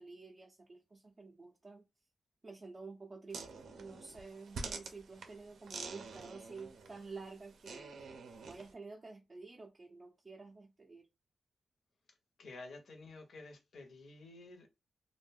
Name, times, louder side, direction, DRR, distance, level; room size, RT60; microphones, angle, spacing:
voice 1, 0.0-1.8 2.4-7.9 8.5-11.1, right 4 dB, 25° right, 0.4 m, -50 dB
sound 1, 3.3-8.7, right 4 dB, 85° right, 0.5 m, -47 dB
voice 2, 12.4-14.7, left 3 dB, 60° left, 0.6 m, -51 dB
2.5 x 2.1 x 3.3 m
wide cardioid pair, 135°, 0 cm